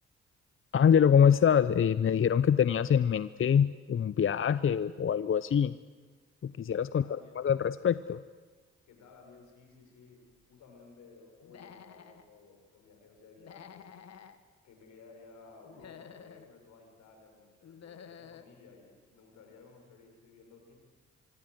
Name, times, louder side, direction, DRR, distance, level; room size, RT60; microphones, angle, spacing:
voice 1, 0.7-5.8 6.4-8.2, left 8 dB, 45° left, 15 dB, 0.7 m, -25 dB
voice 2, 6.9-7.4 8.9-13.9 14.6-20.8, left 4 dB, 80° left, 3 dB, 5.7 m, -56 dB
Human voice / Animal, 11.4-12.2 13.4-14.4 15.6-16.5 17.6-18.5, left 7 dB, 65° left, 1.7 m, -50 dB
25.0 x 24.0 x 7.9 m, 1.4 s
supercardioid pair, 50°, 29 cm